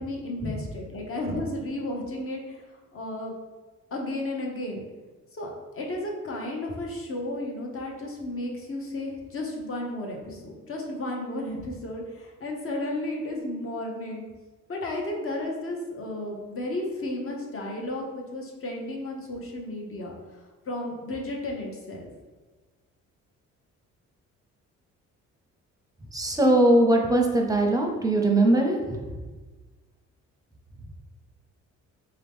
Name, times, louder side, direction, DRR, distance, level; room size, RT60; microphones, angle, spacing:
voice 1, 0.0-2.7 2.9-3.3 3.9-4.9 5.3-5.5 5.8-14.2 14.7-22.1, left 1 dB, 45° left, 0 dB, 1.0 m, -33 dB
voice 2, 26.1-29.0, right 1 dB, 10° right, 2 dB, 0.7 m, -21 dB
3.8 x 2.9 x 3.5 m, 1.3 s
cardioid pair, 90°, 30 cm